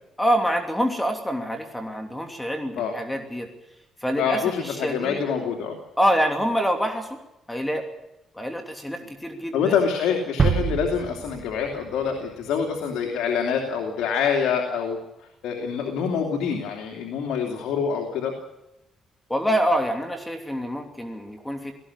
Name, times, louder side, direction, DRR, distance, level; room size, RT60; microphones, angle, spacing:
voice 1, 0.2-3.5 4.0-5.2 6.0-7.2 7.5-7.9 8.3-9.7 19.3-21.8, equal, 10° left, 5 dB, 3.0 m, -26 dB
voice 2, 4.2-5.8 9.5-15.0 15.4-18.3, left 6 dB, 85° left, 3 dB, 2.9 m, -26 dB
sound 1, 10.4-12.3, right 6 dB, 35° right, 1.6 m, -25 dB
18.5 x 15.0 x 9.9 m, 0.90 s
cardioid pair, 90°, 0 cm